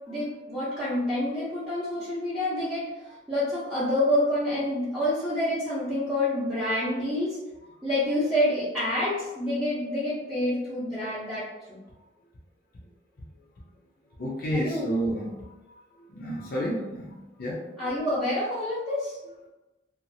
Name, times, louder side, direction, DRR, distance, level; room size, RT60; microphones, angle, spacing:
voice 1, 0.1-2.9 3.3-7.4 7.8-11.5 14.5-14.9 17.8-19.2, left 1 dB, ahead, -14 dB, 0.7 m, -27 dB
voice 2, 14.2-15.5 16.1-17.6, equal, 55° left, -7 dB, 0.6 m, -30 dB
2.7 x 2.4 x 2.6 m, 1.0 s
head